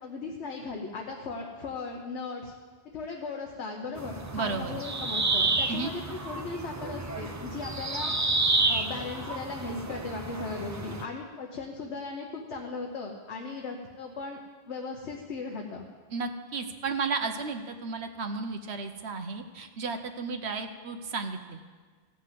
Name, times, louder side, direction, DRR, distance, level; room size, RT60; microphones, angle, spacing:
voice 1, 0.0-2.5 2.9-8.1 8.7-14.4 14.7-15.8, left 4 dB, 75° left, 0 dB, 1.3 m, -37 dB
sound 1, 4.0-11.0, right 3 dB, 25° right, 0.4 m, -30 dB
voice 2, 4.3-4.8 5.7-5.9 16.1-21.7, right 4 dB, 70° right, 7 dB, 1.1 m, -33 dB
15.5 x 6.0 x 7.5 m, 1.5 s
omnidirectional pair, 1.2 m